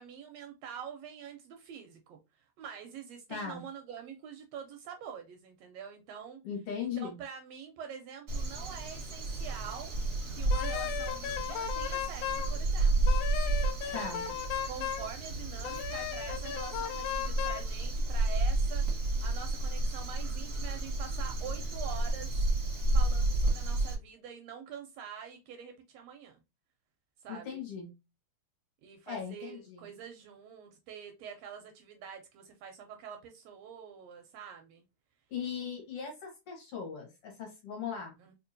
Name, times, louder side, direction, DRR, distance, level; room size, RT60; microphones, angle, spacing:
voice 1, 0.0-2.2 2.6-6.4 6.8-10.0 10.3-13.0 13.8-14.3 14.7-22.4 22.9-26.4 27.2-27.6 28.8-34.8 38.2-38.3, right 7 dB, 80° right, 1.6 m, -46 dB
voice 2, 3.3-3.6 6.4-7.2 13.9-14.3 27.3-27.9 29.1-29.9 35.3-38.2, left 6 dB, 60° left, 1.9 m, -39 dB
Crow, 8.3-23.9, right 2 dB, 50° right, 1.0 m, -31 dB
Wind instrument woodwind instrument, 10.5-12.5 13.1-15.1 15.6-17.7, left 10 dB, 90° left, 2.0 m, -36 dB
4.4 x 2.7 x 2.5 m
omnidirectional pair, 3.3 m